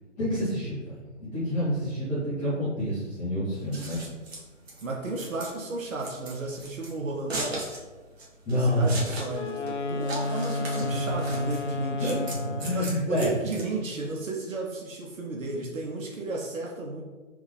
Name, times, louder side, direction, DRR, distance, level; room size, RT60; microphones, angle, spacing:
voice 1, 0.2-3.9 8.4-9.0 10.8-10.9 12.0-12.2 12.4-13.3, equal, 10° left, -13 dB, 0.9 m, -28 dB
Scissors, 3.5-14.1, right 2 dB, 55° right, 1.3 m, -39 dB
voice 2, 4.8-7.7 8.6-12.1 12.7-17.0, right 3 dB, 85° right, -1 dB, 0.9 m, -33 dB
Wind instrument woodwind instrument, 9.3-13.0, left 2 dB, 65° left, 0.6 m, -31 dB
3.5 x 3.4 x 3.3 m, 1.2 s
figure-of-eight pair, 145°, 39 cm